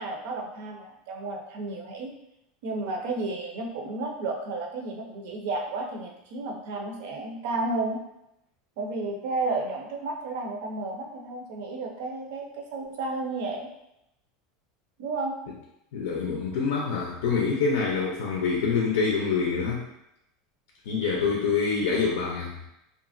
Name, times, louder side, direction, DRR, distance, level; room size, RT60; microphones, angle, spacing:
voice 1, 0.0-2.1 2.6-8.0 8.8-13.7 15.0-15.4, right 3 dB, 60° right, 2 dB, 0.5 m, -32 dB
voice 2, 15.9-19.9 20.9-22.7, left 5 dB, 85° left, -1 dB, 0.5 m, -26 dB
2.9 x 2.4 x 2.5 m, 0.83 s
supercardioid pair, 170°, 0 cm